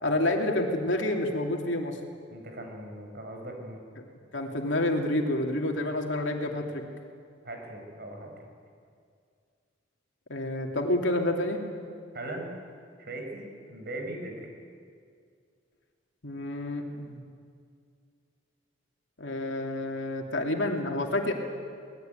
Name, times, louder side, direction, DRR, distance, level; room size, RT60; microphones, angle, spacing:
voice 1, 0.0-2.0 4.3-6.8 10.3-11.6 16.2-17.2 19.2-21.3, left 1 dB, 70° left, 2 dB, 2.9 m, -28 dB
voice 2, 2.3-3.8 7.4-8.3 12.1-12.6 13.0-14.5, right 1 dB, 50° right, 3 dB, 5.3 m, -39 dB
24.5 x 19.5 x 9.3 m, 2.2 s
head